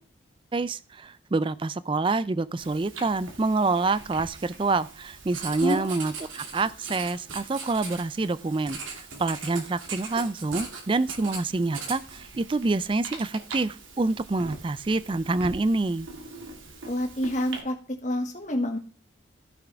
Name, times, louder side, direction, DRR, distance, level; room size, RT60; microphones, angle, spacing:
voice 1, 0.5-16.1, right 3 dB, 25° right, 17 dB, 0.4 m, -27 dB
Writing, 2.6-17.6, right 4 dB, 85° right, 2.5 m, -41 dB
voice 2, 5.6-6.0 16.9-17.8 18.0-18.8, equal, 40° left, 4 dB, 1.8 m, -28 dB
14.5 x 5.9 x 3.5 m, 0.38 s
head